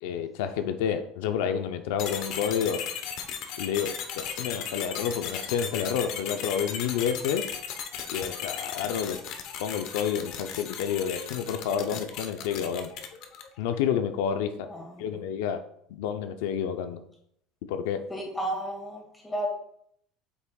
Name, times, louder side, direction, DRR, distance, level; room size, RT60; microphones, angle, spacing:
voice 1, 0.0-2.8 3.6-7.5 8.1-9.2 9.6-12.9 13.6-14.7 15.0-15.6 15.9-17.0 17.7-18.1, left 8 dB, 85° left, 8 dB, 0.5 m, -29 dB
sound 1, 2.0-13.6, left 8 dB, 55° left, 0.8 m, -36 dB
voice 2, 14.7-15.1 18.1-19.5, right 1 dB, 10° left, -1 dB, 1.9 m, -33 dB
7.9 x 5.9 x 2.3 m, 0.70 s
cardioid pair, 155°, 0 cm